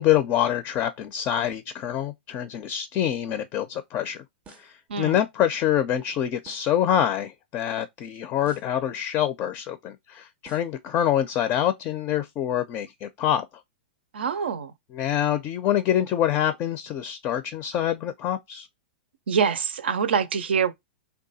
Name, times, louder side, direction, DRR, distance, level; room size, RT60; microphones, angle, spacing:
voice 1, 0.0-4.2 4.6-13.5 14.9-18.7, left 11 dB, 35° left, 0.4 m, -25 dB
sound 1, 4.4-4.8 6.5-6.8 8.4-8.8 10.5-10.8, right 5 dB, 20° right, 0.5 m, -52 dB
voice 2, 14.1-14.7 19.3-20.7, right 6 dB, 75° right, 0.5 m, -25 dB
2.7 x 2.2 x 4.0 m
hypercardioid pair, 115°, 6 cm